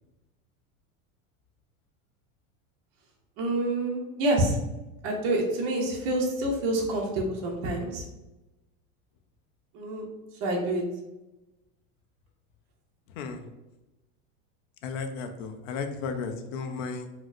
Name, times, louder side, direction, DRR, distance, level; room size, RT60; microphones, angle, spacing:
voice 1, 3.4-4.5 5.0-8.0 9.7-10.0 10.4-10.8, right 1 dB, 35° right, -1 dB, 0.5 m, -27 dB
voice 2, 13.2-13.5 14.8-17.1, left 5 dB, 65° left, 6 dB, 0.5 m, -34 dB
4.2 x 2.0 x 2.4 m, 1.0 s
supercardioid pair, 160°, 41 cm